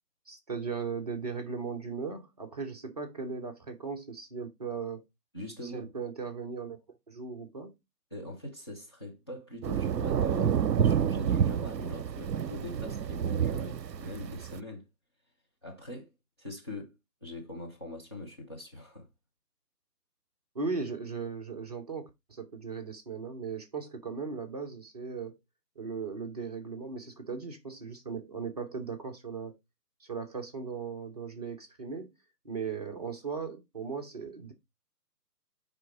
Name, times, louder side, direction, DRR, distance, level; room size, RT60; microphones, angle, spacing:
voice 1, 0.3-5.0 5.6-6.8 7.1-7.8 20.5-25.4 25.8-29.6 30.0-32.1 32.4-34.5, right 5 dB, 25° right, 0.8 m, -37 dB
voice 2, 5.3-5.9 8.1-14.9 15.6-16.1 16.4-16.9 17.2-19.1, left 1 dB, 15° left, 0.7 m, -42 dB
sound 1, 9.6-14.6, right 8 dB, 90° right, 0.6 m, -29 dB
9.6 x 3.5 x 4.5 m
figure-of-eight pair, 145°, 49 cm